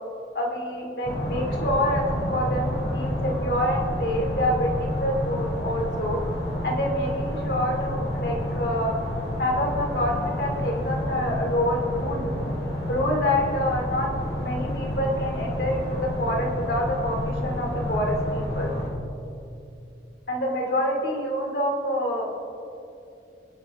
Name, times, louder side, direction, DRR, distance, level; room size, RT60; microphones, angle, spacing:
voice 1, 0.3-2.0 2.3-6.2 6.6-9.0 9.4-12.3 12.9-14.1 14.4-18.7 20.3-22.3, left 1 dB, 65° left, -1 dB, 2.7 m, -27 dB
sound 1, 1.0-18.9, left 1 dB, 85° left, 3.7 m, -29 dB
23.5 x 8.3 x 3.7 m, 2.7 s
head